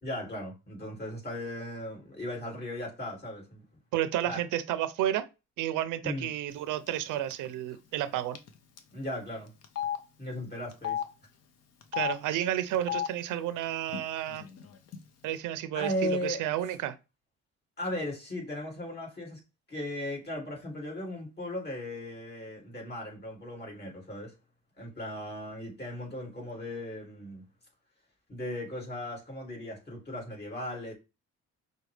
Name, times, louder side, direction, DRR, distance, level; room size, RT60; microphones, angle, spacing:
voice 1, 0.0-3.6 4.2-4.4 6.0-6.3 8.9-9.5 10.2-11.0 15.7-16.4 17.8-19.4 19.7-24.3 24.8-27.4 28.3-30.9, left 1 dB, 35° left, 2.5 m, -37 dB
voice 2, 3.9-5.3 5.6-8.4 11.9-14.5 15.2-17.0, right 12 dB, 85° right, 0.5 m, -31 dB
Telephone, 6.9-7.0 7.3-7.5 8.3-8.5 8.8-8.9 9.6-10.0 10.7-11.0 11.8-12.1 12.7-13.1 13.9-14.0 14.3-15.0, left 10 dB, 55° left, 0.7 m, -33 dB
5.8 x 2.3 x 3.2 m
cardioid pair, 90°, 30 cm